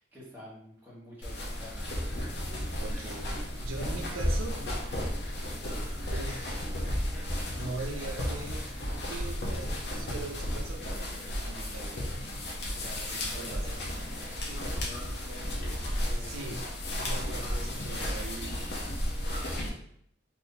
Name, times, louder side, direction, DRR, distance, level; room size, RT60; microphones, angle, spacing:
voice 1, 0.0-1.8 12.7-13.9 14.4-16.5, left 1 dB, 10° right, -7 dB, 1.0 m, -48 dB
sound 1, 1.2-19.7, left 1 dB, 55° left, 0.6 m, -33 dB
voice 2, 2.8-4.6 6.1-6.6 7.5-8.7 9.0-11.1 11.4-12.0 13.0-13.9 16.2-16.7 16.9-18.7 19.3-19.5, right 3 dB, 90° right, 2 dB, 0.5 m, -41 dB
2.6 x 2.6 x 3.7 m, 0.70 s
head